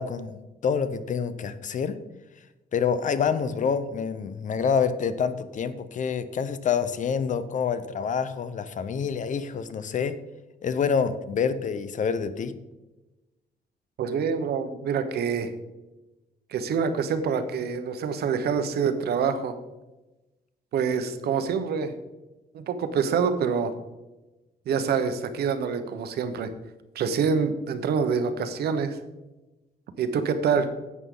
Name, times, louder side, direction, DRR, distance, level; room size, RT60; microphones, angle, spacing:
voice 1, 0.0-2.0 2.7-10.1 10.6-12.5, left 6 dB, 50° left, 13 dB, 0.7 m, -27 dB
voice 2, 14.0-15.5 16.5-19.5 20.7-21.9 22.5-23.7 24.7-26.5 26.9-29.0 30.0-30.7, right 6 dB, 85° right, 9 dB, 1.0 m, -26 dB
11.0 x 8.3 x 3.8 m, 1.1 s
cardioid pair, 135°, 16 cm